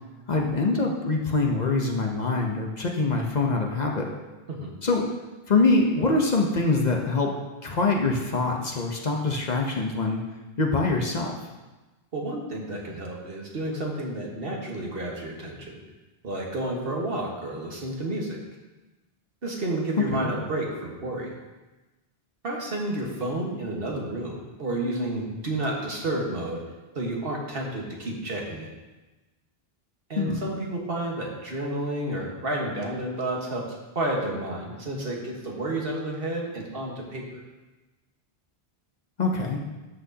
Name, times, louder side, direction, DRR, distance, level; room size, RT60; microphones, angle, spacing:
voice 1, 0.3-4.1 4.8-5.0 5.5-7.3 7.6-10.2 10.6-11.4 20.0-20.3 30.1-30.4 39.2-39.6, left 3 dB, 45° left, 1 dB, 0.9 m, -24 dB
voice 2, 12.1-15.8 16.2-18.4 19.4-21.3 22.4-26.6 26.9-28.7 30.1-33.7 33.9-37.4, right 1 dB, 65° right, -1 dB, 1.6 m, -31 dB
13.0 x 6.1 x 2.8 m, 1.1 s
omnidirectional pair, 1.1 m